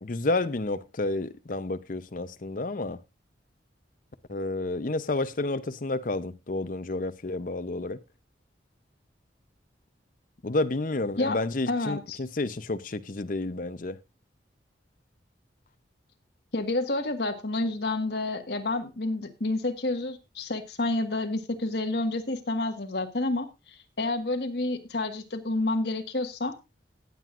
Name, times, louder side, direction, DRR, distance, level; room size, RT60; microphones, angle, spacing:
voice 1, 0.0-3.0 4.3-8.0 10.4-14.0, left 2 dB, 50° left, 0.7 m, -30 dB
voice 2, 11.7-12.2 16.5-23.5 24.0-26.5, left 2 dB, 65° left, 1.6 m, -29 dB
18.5 x 7.6 x 2.5 m
head